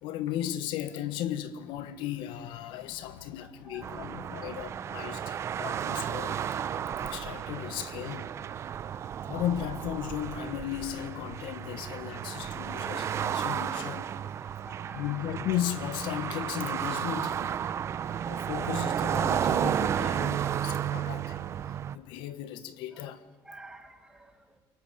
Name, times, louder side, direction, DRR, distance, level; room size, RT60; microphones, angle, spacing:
voice 1, 0.0-6.4 7.0-8.3 9.3-14.1 14.9-17.5 18.1-21.4 21.9-23.2, left 11 dB, 70° left, 1.5 m, -36 dB
voice 2, 3.6-4.1 4.3-4.5 14.3-15.2 22.9-23.0 23.4-24.5, right 2 dB, 5° right, 2.2 m, -50 dB
sound 1, 3.8-22.0, right 9 dB, 35° right, 0.7 m, -33 dB
29.5 x 24.0 x 7.1 m
cardioid pair, 160°, 9 cm